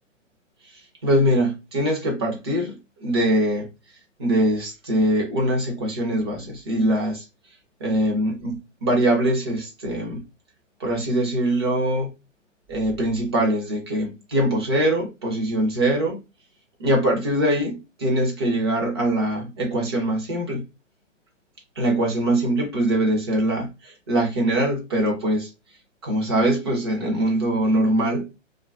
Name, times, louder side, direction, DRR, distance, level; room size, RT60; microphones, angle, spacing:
voice 1, 0.6-3.7 4.2-7.2 7.8-10.2 10.8-12.1 12.7-16.2 16.8-20.6 21.8-25.5 26.0-28.3, right 1 dB, 20° right, 0.5 m, -23 dB
2.8 x 2.2 x 2.4 m
figure-of-eight pair, 135°, 39 cm